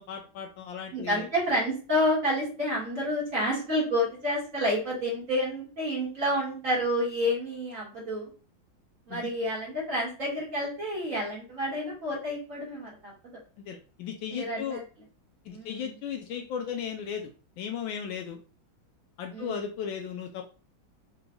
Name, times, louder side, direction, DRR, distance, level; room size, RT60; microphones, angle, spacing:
voice 1, 0.0-1.3 9.1-9.3 13.6-14.8 15.5-17.3 17.6-18.4 19.2-20.4, left 7 dB, 75° left, 4 dB, 1.2 m, -36 dB
voice 2, 0.9-8.3 9.1-13.1 14.3-14.8 15.5-15.8 19.3-19.6, equal, 40° right, -5 dB, 1.8 m, -29 dB
5.1 x 3.1 x 2.2 m, 0.36 s
omnidirectional pair, 2.3 m